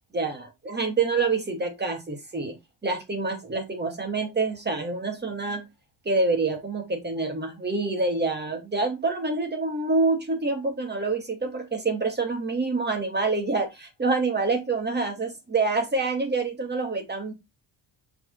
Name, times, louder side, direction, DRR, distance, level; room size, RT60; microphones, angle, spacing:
voice 1, 0.1-2.5 2.8-5.7 6.0-17.3, right 3 dB, 25° right, 2.6 m, -27 dB
6.3 x 4.8 x 3.9 m
cardioid pair, 110°, 42 cm